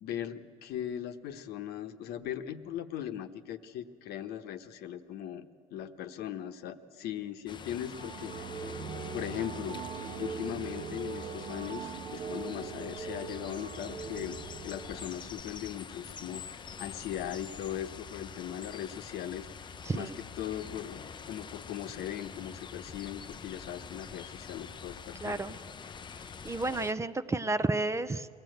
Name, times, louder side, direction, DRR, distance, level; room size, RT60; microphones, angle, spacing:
voice 1, 0.0-5.5 5.7-8.8 9.1-9.9 10.2-19.5 19.9-20.1 20.4-21.0 21.2-25.4, left 10 dB, 65° left, 8 dB, 1.1 m, -39 dB
sound 1, 7.5-26.9, left 6 dB, 25° left, 0.6 m, -45 dB
sound 2, 7.9-15.4, right 6 dB, 45° right, 1.1 m, -41 dB
voice 2, 19.8-20.1 25.2-25.5 26.1-28.3, right 2 dB, 15° right, 13 dB, 0.6 m, -31 dB
23.5 x 16.5 x 7.9 m, 2.3 s
supercardioid pair, 100°, 17 cm